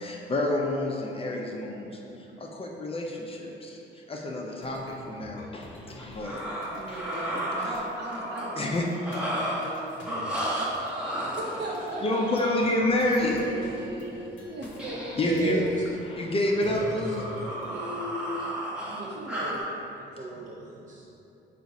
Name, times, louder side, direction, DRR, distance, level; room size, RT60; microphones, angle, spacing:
voice 1, 0.0-6.4 6.9-7.0 8.6-8.9 12.0-13.6 15.2-15.8 16.1-17.2, left 1 dB, 30° left, 0 dB, 0.5 m, -28 dB
sound 1, 4.6-17.7, equal, 75° left, 0.7 m, -46 dB
sound 2, 6.0-8.5 8.9-9.8 10.0-13.4 14.8-15.4 15.7-15.9 16.4-19.6, right 1 dB, 5° right, 0.7 m, -34 dB
voice 2, 6.7-10.3 11.2-12.0 13.4-15.1 17.5-18.4 18.9-19.6, right 1 dB, 60° right, -2 dB, 0.8 m, -38 dB
voice 3, 15.3-15.6 16.6-17.2 19.1-19.7 19.9-21.1, right 3 dB, 40° right, -3 dB, 0.4 m, -34 dB
3.6 x 2.5 x 4.0 m, 2.8 s
cardioid pair, 90°, 20 cm